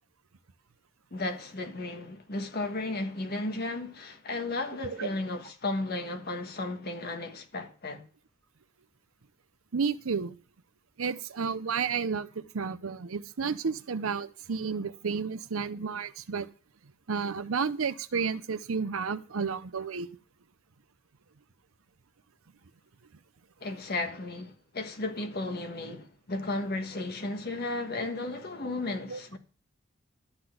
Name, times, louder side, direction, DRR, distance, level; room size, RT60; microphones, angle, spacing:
voice 1, 1.1-8.1 23.6-29.4, left 2 dB, 50° left, 1.4 m, -34 dB
voice 2, 9.7-10.4 11.0-16.5 17.1-20.1 29.1-29.2, right 5 dB, 85° right, 0.6 m, -31 dB
12.0 x 4.0 x 7.8 m
head